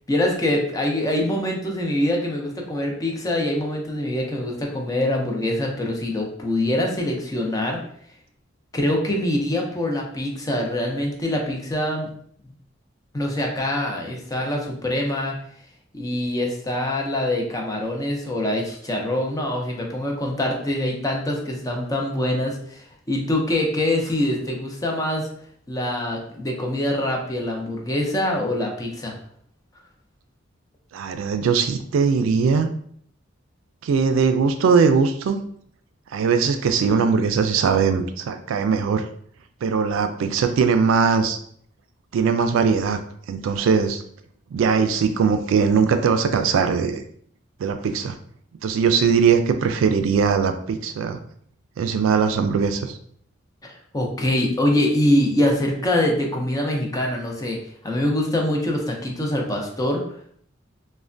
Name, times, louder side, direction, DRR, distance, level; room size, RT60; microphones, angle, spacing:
voice 1, 0.1-7.8 8.7-12.1 13.1-15.3 15.9-25.3 25.7-29.1 53.7-57.6 57.8-60.0, left 1 dB, 20° left, 0 dB, 0.5 m, -24 dB
voice 2, 30.9-32.7 33.8-35.4 36.1-39.0 39.6-41.4 42.1-43.0 43.3-44.0 44.5-47.0 47.6-48.2 48.6-51.2 51.8-52.9, right 5 dB, 85° right, 8 dB, 0.3 m, -20 dB
3.2 x 2.1 x 2.5 m, 0.62 s
head